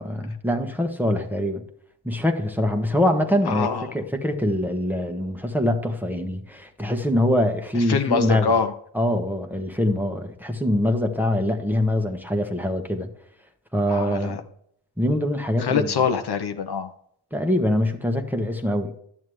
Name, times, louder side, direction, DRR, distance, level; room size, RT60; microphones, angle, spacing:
voice 1, 0.0-1.6 2.0-3.7 3.9-8.5 8.9-13.1 13.7-14.4 15.0-15.9 17.3-18.9, left 1 dB, 5° right, 1.3 m, -24 dB
voice 2, 3.4-3.9 7.7-8.7 13.9-14.4 15.6-16.9, left 6 dB, 55° left, 0.9 m, -24 dB
11.0 x 7.3 x 3.2 m
supercardioid pair, 50°, 46 cm